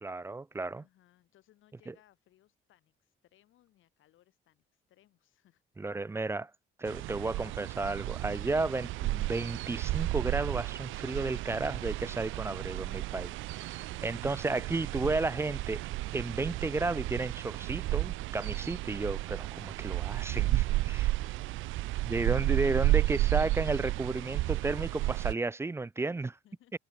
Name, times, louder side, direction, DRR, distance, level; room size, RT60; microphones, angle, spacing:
voice 1, 0.0-0.8 1.9-2.0 5.8-6.5 6.8-15.8 16.1-20.6 22.1-26.3, right 3 dB, 15° right, 0.4 m, -33 dB
voice 2, 0.8-5.6 13.8-14.7 20.7-21.9 26.0-26.7, left 13 dB, 80° left, 7.4 m, -65 dB
sound 1, 6.9-25.3, right 18 dB, 85° right, 0.4 m, -32 dB
cardioid pair, 90°, 20 cm